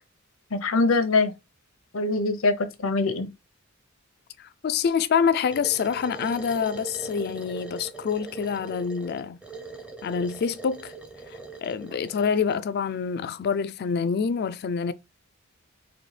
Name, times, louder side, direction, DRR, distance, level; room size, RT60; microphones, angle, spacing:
voice 1, 0.5-1.3 1.9-3.3, left 3 dB, 90° left, 0.7 m, -23 dB
voice 2, 4.4-9.4 10.0-10.9 11.3-14.9, left 6 dB, 50° left, 0.3 m, -26 dB
sound 1, 5.5-12.6, right 4 dB, 5° right, 0.6 m, -41 dB
4.1 x 2.6 x 3.2 m
head